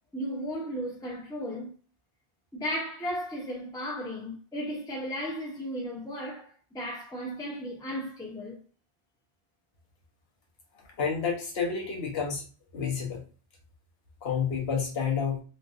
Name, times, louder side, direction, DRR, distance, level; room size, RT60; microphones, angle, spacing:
voice 1, 0.1-1.7 2.5-8.6, equal, 5° left, 0.3 m, -35 dB
voice 2, 11.0-12.4 12.7-13.2 14.2-15.4, left 6 dB, 75° left, 1.1 m, -29 dB
3.1 x 2.4 x 2.4 m
omnidirectional pair, 1.0 m